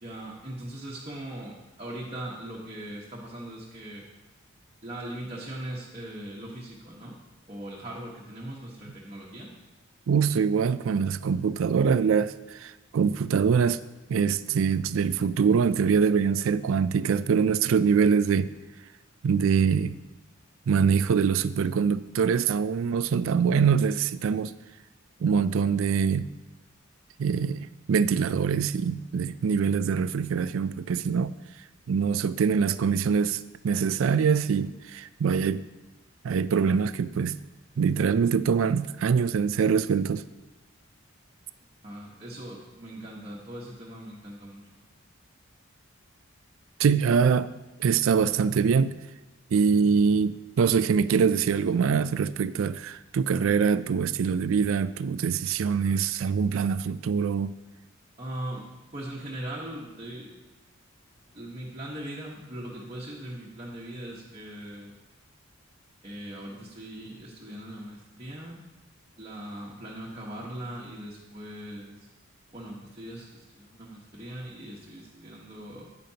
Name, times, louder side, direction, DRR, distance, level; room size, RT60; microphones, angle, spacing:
voice 1, 0.0-4.0 4.8-7.1 7.5-9.5 41.8-44.6 58.2-60.4 61.3-64.9 66.0-68.6 69.2-72.1 72.5-75.8, right 1 dB, 30° right, 1.2 m, -40 dB
voice 2, 10.1-13.8 14.1-18.5 19.2-19.9 20.7-24.5 25.2-26.3 27.2-31.3 31.9-35.6 36.2-37.4 37.8-40.2 46.8-47.5 47.8-49.0 49.5-57.6, right 6 dB, 75° right, 0.4 m, -24 dB
10.0 x 9.1 x 2.9 m
head